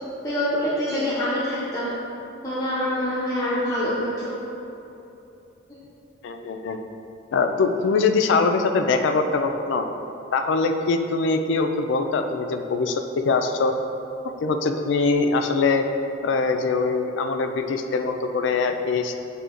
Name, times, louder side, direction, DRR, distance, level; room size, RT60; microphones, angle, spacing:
voice 1, 0.2-2.0 2.4-4.3, left 1 dB, 15° left, -10 dB, 0.5 m, -25 dB
voice 2, 6.2-6.8 7.3-9.9 10.3-13.7 14.4-15.8 16.2-19.1, left 4 dB, 75° left, 6 dB, 0.3 m, -23 dB
7.9 x 2.7 x 2.5 m, 2.9 s
head